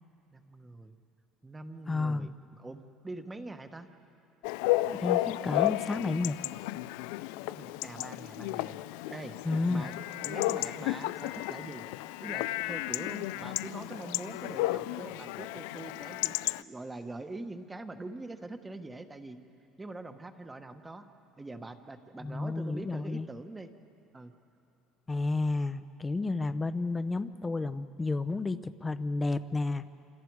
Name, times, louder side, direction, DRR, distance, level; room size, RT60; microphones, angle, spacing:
voice 1, 0.3-0.9 1.4-3.9 7.5-8.8 9.1-9.4 9.7-9.9 10.2-11.9 12.2-19.4 19.8-21.0 21.4-23.7 24.1-24.3, right 2 dB, 10° right, 8 dB, 1.2 m, -43 dB
voice 2, 1.9-2.3 4.9-6.4 9.4-9.9 22.2-23.3 25.1-29.9, left 3 dB, 15° left, 13 dB, 0.7 m, -31 dB
Chatter / Bark / Livestock farm animals working animals, 4.4-16.6, left 18 dB, 90° left, 0.4 m, -33 dB
28.0 x 27.5 x 4.8 m, 2.8 s
cardioid pair, 145°, 0 cm